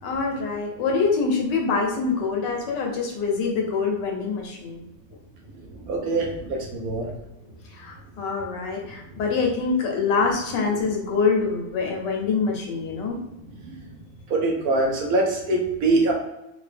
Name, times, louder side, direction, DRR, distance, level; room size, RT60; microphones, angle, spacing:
voice 1, 0.0-4.8 7.8-13.2, left 4 dB, 85° left, 1 dB, 1.5 m, -25 dB
voice 2, 5.9-7.1 14.3-16.1, right 2 dB, 65° right, 0 dB, 1.2 m, -23 dB
3.7 x 2.4 x 3.3 m, 0.91 s
omnidirectional pair, 1.8 m